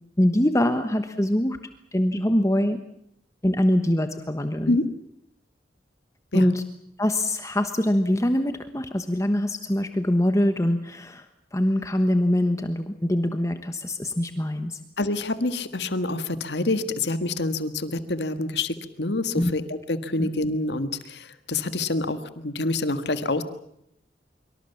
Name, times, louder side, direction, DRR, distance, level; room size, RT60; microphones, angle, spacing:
voice 1, 0.2-1.6 1.9-2.8 3.4-4.8 6.3-6.6 7.0-11.3 11.5-14.8 19.3-19.5 20.2-20.3, left 1 dB, 20° left, 8 dB, 1.2 m, -23 dB
voice 2, 15.0-23.4, left 2 dB, 75° left, 10 dB, 1.8 m, -27 dB
25.0 x 24.5 x 7.2 m, 0.74 s
head